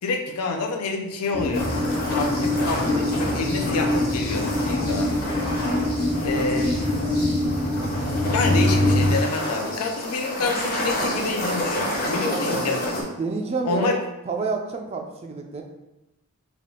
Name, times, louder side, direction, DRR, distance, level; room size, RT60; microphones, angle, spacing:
voice 1, 0.0-5.1 6.2-6.8 8.3-12.8 13.6-14.0, left 3 dB, 75° left, 3 dB, 0.5 m, -28 dB
sound 1, 1.3-9.1, left 1 dB, 20° left, 0.7 m, -24 dB
sound 2, 1.5-13.0, left 1 dB, 40° left, 0.9 m, -30 dB
voice 2, 12.3-12.8 13.2-14.0 14.3-15.6, right 4 dB, 25° right, 3 dB, 0.4 m, -29 dB
3.5 x 2.3 x 3.7 m, 0.97 s
head